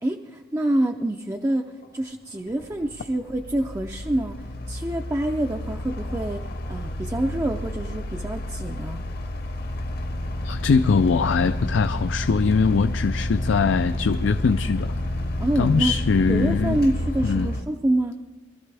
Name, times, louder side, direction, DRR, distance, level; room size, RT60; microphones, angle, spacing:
voice 1, 0.0-1.7 1.9-9.0 15.4-15.9 16.3-18.2, right 1 dB, 15° right, 3 dB, 0.4 m, -26 dB
sound 1, 1.8-1.9 2.5-17.6, left 1 dB, 50° left, 0.9 m, -30 dB
voice 2, 10.4-14.9 15.6-16.8 17.2-17.5, left 5 dB, 70° left, 10 dB, 0.4 m, -22 dB
21.5 x 13.0 x 3.4 m, 1.2 s
head